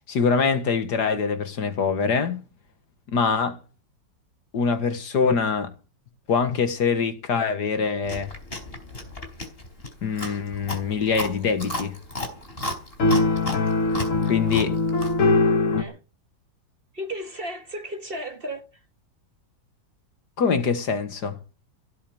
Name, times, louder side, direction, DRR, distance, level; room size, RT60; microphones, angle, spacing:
voice 1, 0.1-2.4 3.1-3.6 4.5-5.7 6.3-8.3 10.0-12.0 14.3-14.7 20.4-21.4, left 5 dB, 65° left, 2.0 m, -24 dB
Chewing mastication, 8.0-15.2, left 1 dB, 30° left, 4.4 m, -34 dB
sound 1, 13.0-15.8, left 3 dB, 50° left, 1.5 m, -21 dB
voice 2, 16.9-18.8, equal, 30° right, 1.8 m, -34 dB
17.0 x 8.5 x 7.8 m
omnidirectional pair, 2.0 m